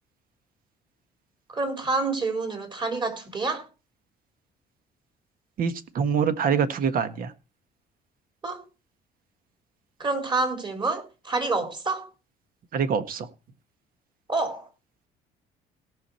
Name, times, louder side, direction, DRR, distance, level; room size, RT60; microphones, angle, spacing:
voice 1, 1.5-3.7 8.4-8.7 10.0-12.1 14.3-14.7, right 3 dB, 25° right, 3.8 m, -28 dB
voice 2, 5.6-7.3 12.7-13.3, right 6 dB, 60° right, 1.5 m, -25 dB
18.0 x 6.1 x 4.3 m
cardioid pair, 110°, 17 cm